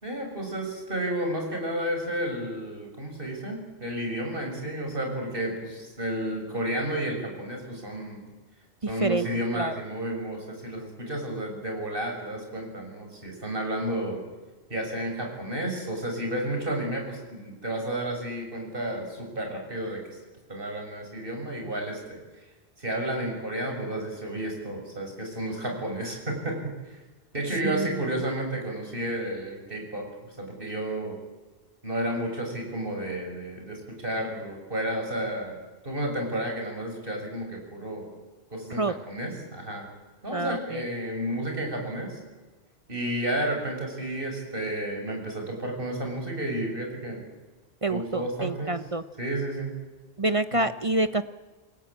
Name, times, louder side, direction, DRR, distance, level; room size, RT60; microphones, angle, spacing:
voice 1, 0.0-8.3 8.9-14.2 14.7-20.0 20.5-22.2 22.8-26.6 27.3-31.2 31.8-38.1 38.5-39.9 40.2-42.2 42.9-47.2 47.9-48.8 49.2-49.7 50.5-50.6, right 1 dB, 50° right, 2 dB, 7.3 m, -31 dB
voice 2, 8.8-9.3 9.5-9.7 27.7-28.2 38.7-38.9 40.3-40.8 47.8-49.0 50.2-51.2, right 2 dB, 30° right, 11 dB, 0.8 m, -27 dB
29.0 x 20.5 x 8.9 m, 1.3 s
omnidirectional pair, 1.2 m